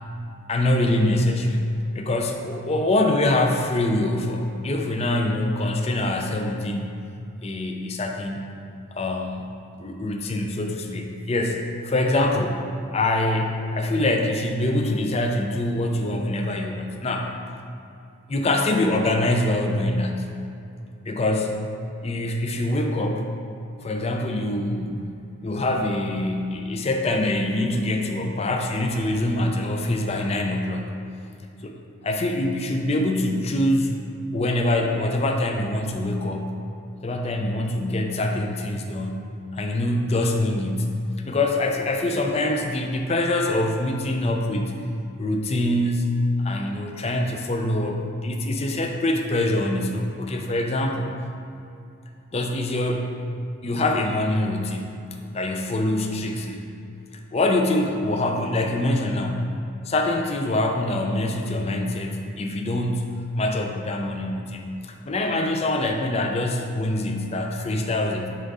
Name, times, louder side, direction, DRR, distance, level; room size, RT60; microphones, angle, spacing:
voice 1, 0.5-1.6 1.9-6.9 7.4-8.4 8.9-9.4 9.8-12.6 12.9-17.3 18.3-20.3 21.1-21.5 22.0-23.3 23.8-25.1 25.4-30.8 31.6-31.8 32.0-34.0 34.3-36.6 37.0-39.2 39.5-40.9 41.2-44.8 45.2-51.1 52.3-53.1 53.6-55.0 55.3-56.7 57.3-59.5 59.9-68.3, left 1 dB, 30° left, 3 dB, 0.5 m, -24 dB
7.5 x 3.8 x 4.8 m, 2.6 s
head